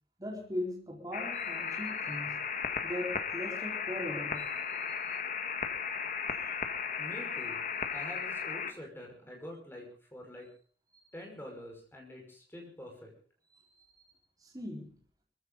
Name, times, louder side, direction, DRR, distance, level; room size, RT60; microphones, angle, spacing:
voice 1, 0.2-2.4 2.8-4.5 5.0-5.1 10.9-11.0 14.4-14.9, left 1 dB, 20° right, -2 dB, 4.5 m, -39 dB
sound 1, 1.1-8.7, left 6 dB, 45° left, 1.7 m, -35 dB
voice 2, 7.0-7.6 7.9-10.5 11.1-13.1, left 1 dB, 15° left, 1 dB, 5.6 m, -46 dB
23.5 x 15.5 x 4.0 m, 0.43 s
head